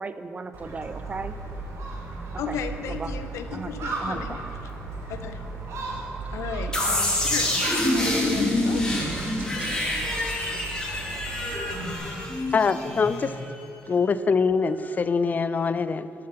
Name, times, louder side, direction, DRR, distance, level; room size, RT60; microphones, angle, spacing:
voice 1, 0.0-1.3 2.5-2.6 2.9-3.2 3.5-3.7 4.0-4.4 9.6-9.8, right 4 dB, 30° right, 11 dB, 0.4 m, -35 dB
Gull seagull, 0.5-12.0, right 3 dB, 75° right, 1.3 m, -36 dB
voice 2, 2.4-4.4 5.1-5.5 6.3-7.7 8.1-9.0 10.5-10.6, left 7 dB, 85° left, 8 dB, 0.5 m, -35 dB
sound 1, 6.7-13.5, left 1 dB, 15° left, 2.1 m, -26 dB
voice 3, 12.5-13.4 13.9-16.1, left 5 dB, 35° left, 13 dB, 0.3 m, -23 dB
6.8 x 6.5 x 5.8 m, 2.7 s
cardioid pair, 90°, 5 cm